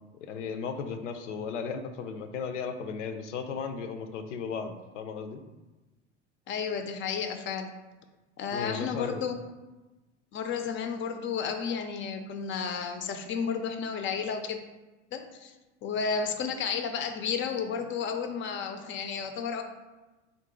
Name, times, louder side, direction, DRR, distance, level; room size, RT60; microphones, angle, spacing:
voice 1, 0.2-5.4 8.5-9.3, left 6 dB, 80° left, 7 dB, 0.5 m, -35 dB
voice 2, 6.5-7.8 8.4-9.4 10.3-14.6 15.1-15.5 15.8-19.6, left 6 dB, 35° left, 6 dB, 0.5 m, -32 dB
3.8 x 2.5 x 3.6 m, 1.1 s
hypercardioid pair, 75°, 36 cm